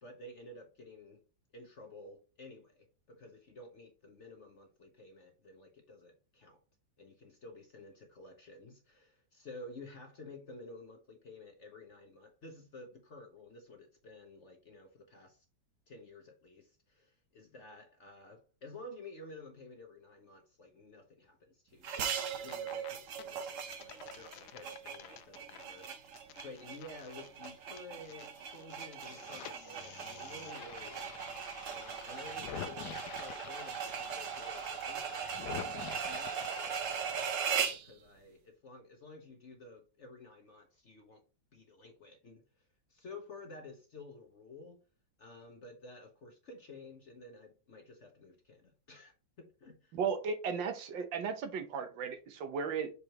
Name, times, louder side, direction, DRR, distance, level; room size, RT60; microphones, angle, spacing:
voice 1, 0.0-1.2 1.5-6.6 7.0-15.4 15.9-22.1 22.3-31.2 31.6-41.2 41.5-44.8 45.2-50.0, left 2 dB, 50° left, 0.9 m, -52 dB
sound 1, 21.8-37.9, right 7 dB, 55° right, 0.9 m, -39 dB
sound 2, 22.4-22.9 23.2-28.3 28.5-37.5, left 10 dB, 70° left, 1.1 m, -48 dB
voice 2, 49.9-52.9, right 6 dB, 75° right, 1.7 m, -35 dB
6.6 x 4.9 x 2.9 m
omnidirectional pair, 2.1 m